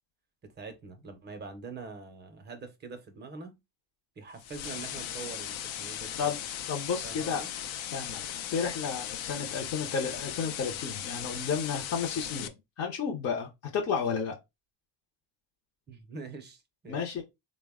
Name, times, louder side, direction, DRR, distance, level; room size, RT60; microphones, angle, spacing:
voice 1, 0.4-3.6 4.2-6.3 7.0-7.5 15.9-17.2, right 4 dB, 25° right, 0.5 m, -44 dB
sound 1, 4.4-12.5, left 10 dB, 85° left, 0.6 m, -38 dB
voice 2, 6.7-7.4 7.9-8.2 8.5-12.5 12.8-14.3 16.9-17.2, left 6 dB, 35° left, 0.5 m, -32 dB
3.9 x 2.1 x 3.4 m
cardioid pair, 175°, 45 cm